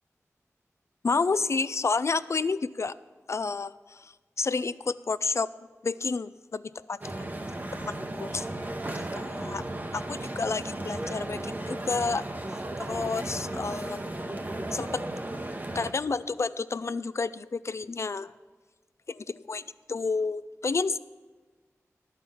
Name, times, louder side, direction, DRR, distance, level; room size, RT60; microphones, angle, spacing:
voice 1, 1.0-2.9 3.3-5.5 5.8-7.3 7.7-8.5 8.9-9.6 9.9-12.2 12.8-14.0 14.7-15.0 15.7-18.3 19.1-21.0, left 4 dB, 55° left, 16 dB, 0.3 m, -30 dB
sound 1, 7.0-15.9, right 1 dB, 30° right, 0.9 m, -35 dB
11.5 x 5.6 x 6.9 m, 1.3 s
wide cardioid pair, 50°, 6 cm